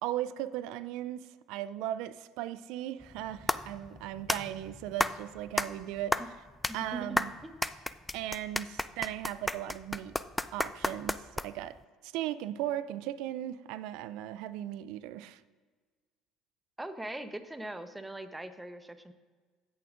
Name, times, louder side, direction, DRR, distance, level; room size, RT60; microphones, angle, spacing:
voice 1, 0.0-6.2 6.7-7.3 8.1-10.2 10.5-11.8 12.0-15.4, right 12 dB, 70° right, 0.3 m, -37 dB
sound 1, 3.0-11.8, left 1 dB, 10° left, 0.3 m, -34 dB
voice 2, 6.7-7.7 16.8-19.1, right 1 dB, 10° right, 0.8 m, -41 dB
15.5 x 7.1 x 2.5 m
hypercardioid pair, 70°, 0 cm